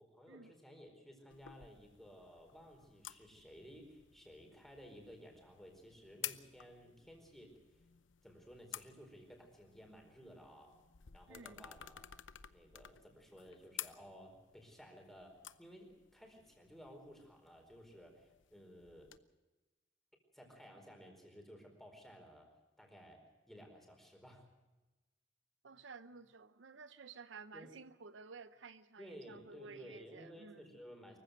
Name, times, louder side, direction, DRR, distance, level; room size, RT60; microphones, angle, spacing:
voice 1, 0.0-7.8 8.2-10.8 11.1-12.1 12.5-19.1 20.3-24.5 27.5-27.7 29.0-31.2, equal, ahead, 2 dB, 4.5 m, -56 dB
sound 1, 1.3-19.2, left 12 dB, 75° left, 0.8 m, -53 dB
voice 2, 11.3-11.7 25.6-30.8, right 4 dB, 75° right, 13 dB, 0.7 m, -54 dB
24.0 x 15.5 x 7.8 m, 1.1 s
head